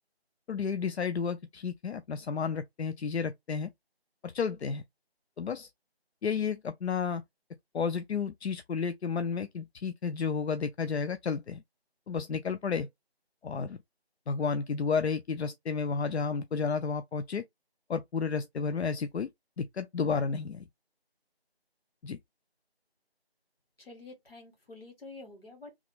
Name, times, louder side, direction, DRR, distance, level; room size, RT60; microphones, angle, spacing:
voice 1, 0.5-3.7 4.2-4.8 5.4-5.7 6.2-7.2 7.7-11.6 12.1-12.9 13.4-13.8 14.3-17.4 17.9-19.3 19.6-20.7 22.0-22.2, left 5 dB, 85° left, 0.5 m, -32 dB
voice 2, 23.8-25.8, left 3 dB, 60° left, 1.8 m, -48 dB
3.6 x 3.0 x 2.3 m
figure-of-eight pair, 175°, 32 cm